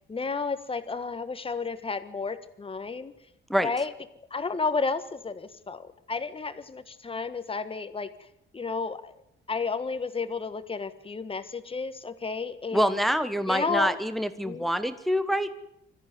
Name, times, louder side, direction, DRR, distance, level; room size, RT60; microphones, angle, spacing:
voice 1, 0.0-3.1 3.6-3.9 4.3-8.1 8.5-9.1 9.5-13.0 13.5-14.0 14.4-14.7, left 4 dB, 30° left, 11 dB, 1.5 m, -32 dB
voice 2, 12.7-15.5, equal, ahead, 11 dB, 1.2 m, -26 dB
21.5 x 14.0 x 9.4 m, 0.82 s
cardioid pair, 90°, 20 cm